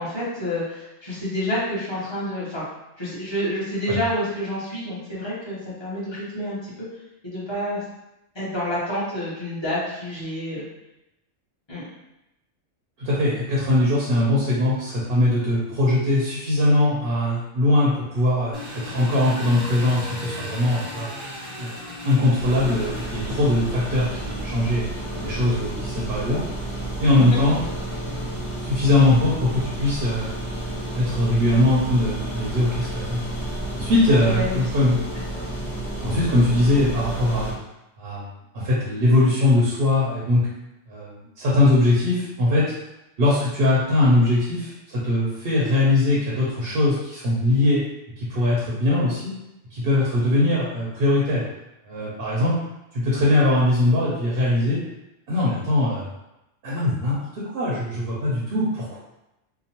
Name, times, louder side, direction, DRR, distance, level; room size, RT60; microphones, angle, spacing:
voice 1, 0.0-2.6 3.0-6.9 7.2-7.8 8.3-10.7 11.7-11.8 27.1-27.4 34.0-34.6 35.3-35.5, left 1 dB, 25° left, -9 dB, 0.9 m, -28 dB
voice 2, 13.0-21.1 21.6-21.7 22.0-24.8 25.2-26.4 27.0-27.6 28.6-30.3 30.9-33.2 33.7-35.2 35.9-37.5 38.0-38.3 38.5-40.4 40.9-42.7 43.2-47.8 48.2-49.3 49.7-51.4 51.9-52.5 52.9-54.8 55.3-56.0 56.6-59.0, left 2 dB, 55° right, -6 dB, 0.8 m, -21 dB
Engine, 18.5-25.0, left 1 dB, 30° right, 0.4 m, -37 dB
sound 1, 22.4-37.5, right 2 dB, 50° left, 1.4 m, -31 dB
2.9 x 2.0 x 2.8 m, 0.92 s
omnidirectional pair, 1.3 m